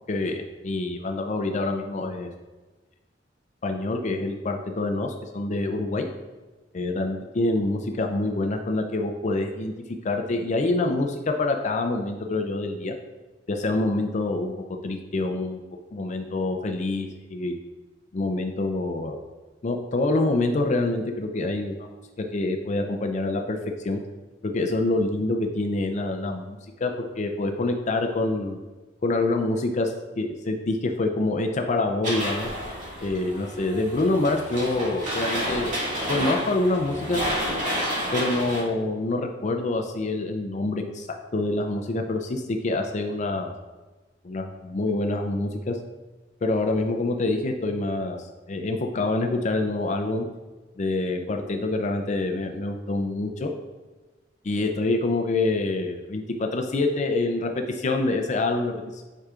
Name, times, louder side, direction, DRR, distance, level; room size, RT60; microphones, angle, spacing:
voice 1, 0.1-2.3 3.6-6.1 6.7-9.7 10.0-12.9 13.5-14.5 14.8-15.6 15.9-17.5 18.1-19.2 19.6-21.9 22.2-24.0 24.4-28.6 29.0-32.5 33.0-35.7 36.1-37.3 38.1-43.5 44.2-45.8 46.4-50.2 50.8-53.5 54.4-59.0, left 2 dB, 40° left, 4 dB, 0.5 m, -26 dB
sound 1, 32.0-38.6, equal, 45° right, 1.9 m, -30 dB
9.1 x 4.8 x 2.4 m, 1.2 s
head